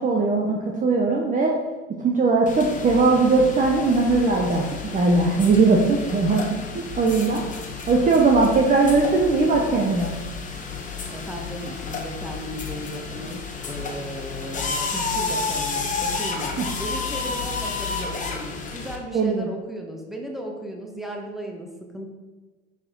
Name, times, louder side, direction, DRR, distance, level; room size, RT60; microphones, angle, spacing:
voice 1, 0.0-1.5 2.0-6.4 7.0-7.4 7.9-10.1 16.6-16.7 19.1-19.5, right 3 dB, 20° right, 0 dB, 0.9 m, -19 dB
sound 1, 2.5-19.0, left 4 dB, 20° left, 1.2 m, -31 dB
voice 2, 6.1-6.4 11.1-22.1, equal, ahead, 1 dB, 1.3 m, -36 dB
8.8 x 4.9 x 3.8 m, 1.2 s
figure-of-eight pair, 80°, 35 cm